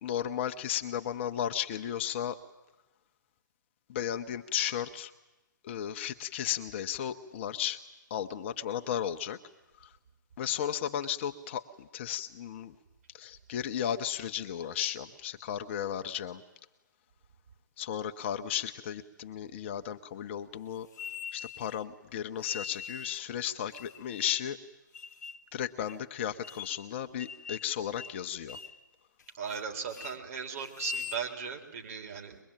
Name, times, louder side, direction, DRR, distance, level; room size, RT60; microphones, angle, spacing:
voice 1, 0.0-2.4 3.9-5.1 5.6-7.8 8.1-9.4 9.8-9.9 10.4-12.7 13.1-16.4 17.8-20.9 21.3-24.6 25.5-28.6, left 10 dB, 35° left, 7 dB, 1.0 m, -34 dB
sound 1, 20.9-21.8 22.4-23.3 23.7-24.5 24.9-25.4 25.9-26.0 26.4-26.9 27.2-27.7 28.0-28.2 28.5-28.8 29.2-29.6 29.9-30.2 30.7-31.2, left 6 dB, 55° left, 1.3 m, -42 dB
voice 2, 29.4-32.4, right 6 dB, 45° right, 2 dB, 3.9 m, -37 dB
23.0 x 22.5 x 9.1 m, 1.0 s
figure-of-eight pair, 135°, 11 cm